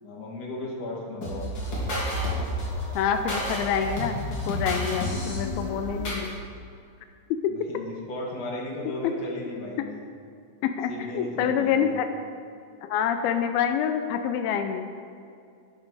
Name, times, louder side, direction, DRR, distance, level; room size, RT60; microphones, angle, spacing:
voice 1, 0.0-1.5 7.5-10.0 10.9-11.9, left 1 dB, 70° left, -3 dB, 0.9 m, -35 dB
sound 1, 1.2-6.3, left 1 dB, 30° left, 2.8 m, -30 dB
voice 2, 3.0-4.2 4.5-6.3 10.6-12.1 12.8-14.9, left 8 dB, 90° left, 7 dB, 2.1 m, -27 dB
12.5 x 10.5 x 4.8 m, 2.4 s
omnidirectional pair, 5.1 m